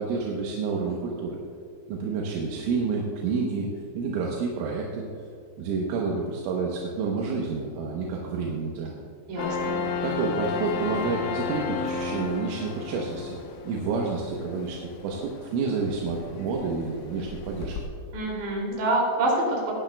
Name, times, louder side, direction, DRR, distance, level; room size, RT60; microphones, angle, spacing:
voice 1, 0.0-1.4 1.9-3.7 3.9-5.0 5.6-9.0 10.0-13.4 13.7-17.8, right 4 dB, 85° right, -2 dB, 3.4 m, -29 dB
voice 2, 9.3-9.7 18.1-19.7, right 1 dB, 60° right, -2 dB, 4.7 m, -26 dB
sound 1, 9.4-17.9, left 5 dB, 85° left, 3.5 m, -33 dB
20.0 x 10.5 x 2.3 m, 2.4 s
omnidirectional pair, 5.5 m